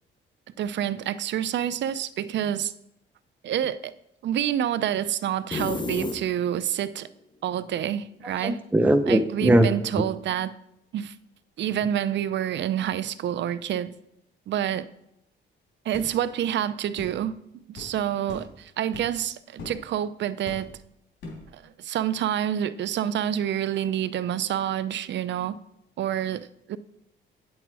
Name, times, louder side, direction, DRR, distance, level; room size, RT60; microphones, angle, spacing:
voice 1, 0.6-2.7 3.4-3.9 4.2-7.1 7.4-8.6 9.1-10.5 10.9-11.1 11.6-13.9 14.5-14.9 15.9-20.7 21.5-25.6 26.0-26.8, right 10 dB, 65° right, 15 dB, 0.5 m, -28 dB
sound 1, 5.5-6.7, left 2 dB, 20° left, 0.8 m, -30 dB
voice 2, 8.4-9.7, right 1 dB, 10° right, 8 dB, 0.6 m, -20 dB
sound 2, 15.9-16.1 17.0-17.2 17.8-17.9 18.3-18.5 18.9-19.2 19.6-19.8 20.5-20.8 21.2-21.5, left 2 dB, 75° left, 3.2 m, -40 dB
9.1 x 7.5 x 4.7 m, 0.80 s
cardioid pair, 90°, 20 cm